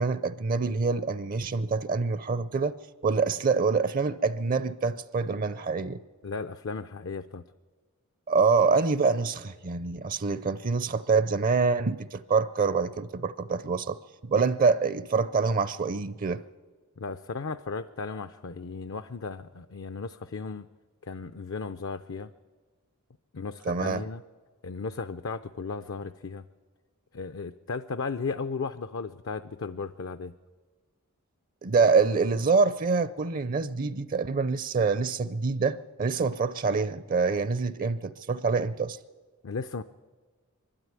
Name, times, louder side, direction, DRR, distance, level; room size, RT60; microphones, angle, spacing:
voice 1, 0.0-2.7 3.0-6.0 8.3-14.0 14.3-16.4 23.7-24.0 31.6-39.0, right 4 dB, 40° right, 0.5 m, -26 dB
voice 2, 6.2-7.4 17.0-20.7 21.0-22.3 23.3-24.2 24.6-26.4 27.1-30.3 39.4-39.8, left 4 dB, 60° left, 0.5 m, -35 dB
23.5 x 12.5 x 9.6 m
head